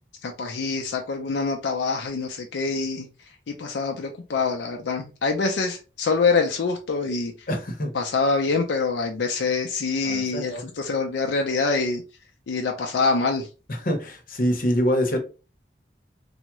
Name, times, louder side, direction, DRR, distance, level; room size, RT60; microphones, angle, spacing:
voice 1, 0.2-3.1 3.5-7.5 7.9-12.0 12.5-13.5, left 4 dB, 75° left, 0.4 m, -25 dB
voice 2, 7.5-7.9 10.0-10.6 13.7-15.2, equal, 50° left, 0.8 m, -25 dB
3.4 x 2.0 x 2.9 m
head